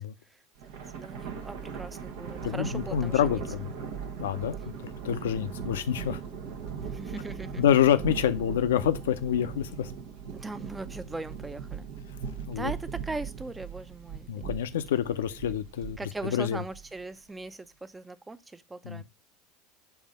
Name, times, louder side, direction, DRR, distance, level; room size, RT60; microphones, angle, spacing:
voice 1, 0.3-3.4 6.8-7.6 10.3-11.9 12.6-14.5 16.0-19.0, right 2 dB, 15° right, 0.6 m, -40 dB
Thunder, 0.6-17.2, right 7 dB, 65° right, 0.9 m, -39 dB
voice 2, 2.4-3.7 4.2-4.7 5.0-6.2 7.6-9.9 12.5-12.7 14.3-16.0 16.2-16.6 18.8-19.0, left 9 dB, 75° left, 0.5 m, -27 dB
6.9 x 2.7 x 5.2 m
hypercardioid pair, 80°, 0 cm